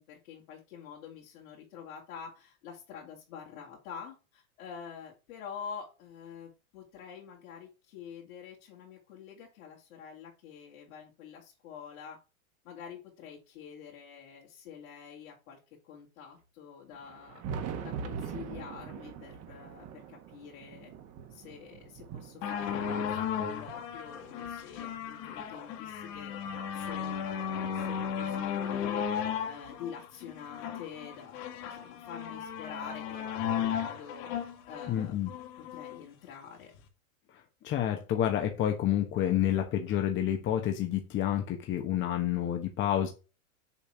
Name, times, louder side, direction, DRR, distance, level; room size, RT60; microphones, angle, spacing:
voice 1, 0.0-12.2 12.6-15.6 15.8-17.4 17.8-20.9 21.3-29.0 29.4-35.3 35.6-36.7, left 7 dB, 65° left, -5 dB, 3.2 m, -47 dB
Thunder, 16.9-25.5 26.1-27.8 29.0-29.1 29.6-29.7 31.6-31.7 33.1-33.2 34.7-34.8, right 6 dB, 35° right, 1.6 m, -43 dB
sound 1, 22.4-36.0 36.7-36.8, left 8 dB, 45° left, 2.2 m, -35 dB
voice 2, 34.9-35.3 37.3-43.1, left 11 dB, 25° left, 4 dB, 1.2 m, -29 dB
7.1 x 4.2 x 6.2 m, 0.31 s
hypercardioid pair, 135°, 42 cm